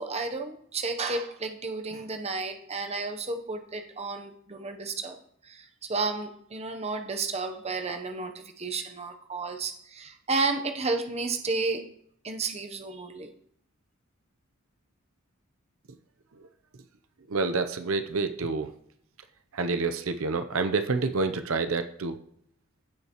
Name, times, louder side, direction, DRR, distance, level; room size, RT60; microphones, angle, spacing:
voice 1, 0.0-5.2 5.4-11.8 12.2-13.3, right 3 dB, 30° right, 5 dB, 0.8 m, -32 dB
voice 2, 17.3-18.7 19.5-22.2, right 4 dB, 75° right, 8 dB, 0.7 m, -28 dB
16.0 x 5.6 x 3.0 m, 0.67 s
head